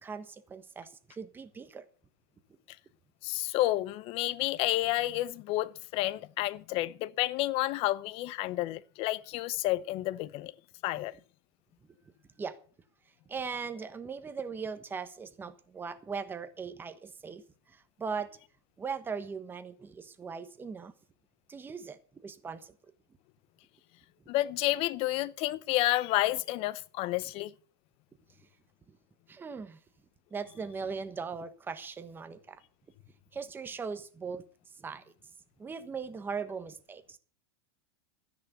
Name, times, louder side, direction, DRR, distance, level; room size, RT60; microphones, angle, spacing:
voice 1, 0.0-1.9 12.4-12.6 13.3-17.4 17.7-18.3 18.8-20.9 21.5-22.7 28.9-29.0 29.3-29.8 30.3-32.6 33.3-34.4 34.8-35.0 35.6-37.2, right 5 dB, 15° right, 1.2 m, -39 dB
voice 2, 3.2-10.5 10.8-11.1 24.3-27.5, left 17 dB, 40° left, 0.7 m, -30 dB
12.5 x 10.5 x 6.8 m
supercardioid pair, 145°, 15 cm